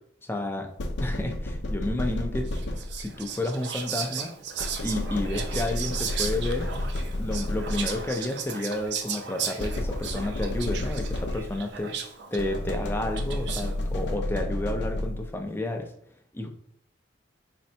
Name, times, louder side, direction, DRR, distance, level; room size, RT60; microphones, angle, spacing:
voice 1, 0.3-0.7 1.0-2.5 3.0-4.3 4.8-6.7 7.2-11.9 12.3-15.9 16.3-16.5, left 1 dB, 10° left, 4 dB, 0.5 m, -31 dB
sound 1, 0.8-3.3 4.6-8.2 9.6-11.8 12.4-15.5, left 1 dB, 70° left, 0.5 m, -31 dB
Whispering, 2.5-13.8, right 7 dB, 65° right, 0.5 m, -36 dB
4.3 x 3.2 x 2.8 m, 0.64 s
head